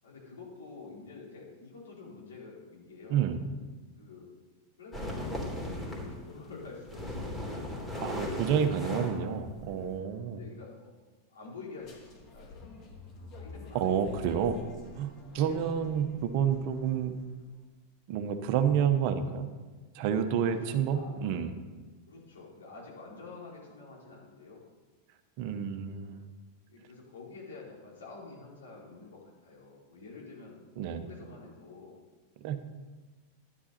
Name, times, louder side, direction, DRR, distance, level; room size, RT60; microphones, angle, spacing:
voice 1, 0.0-3.3 4.0-4.3 4.8-7.7 10.3-10.9 11.3-12.6 13.3-14.1 15.4-15.9 20.4-21.1 22.1-24.6 26.7-32.0, left 4 dB, 80° left, -5 dB, 4.5 m, -48 dB
sound 1, 4.9-6.2 6.6-9.9, left 1 dB, 10° left, 3.3 m, -37 dB
voice 2, 8.0-10.4 13.7-14.6 15.0-17.1 18.1-19.5 19.9-21.5 25.4-26.2 30.8-31.0 32.4-32.6, right 8 dB, 50° right, 8 dB, 1.1 m, -29 dB
sound 2, 11.8-17.4, left 2 dB, 40° left, 2.8 m, -49 dB
12.5 x 11.0 x 4.3 m, 1.3 s
hypercardioid pair, 95°, 0 cm